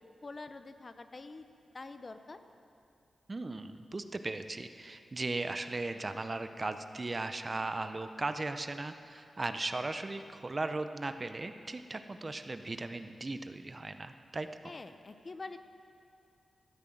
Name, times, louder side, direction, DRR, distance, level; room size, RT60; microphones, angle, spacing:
voice 1, 0.2-1.5 1.7-2.4 14.6-15.6, left 3 dB, 35° left, 9 dB, 0.6 m, -45 dB
voice 2, 3.3-14.5, right 2 dB, 25° right, 9 dB, 0.5 m, -37 dB
14.0 x 9.6 x 7.7 m, 2.6 s
wide cardioid pair, 130°, 0 cm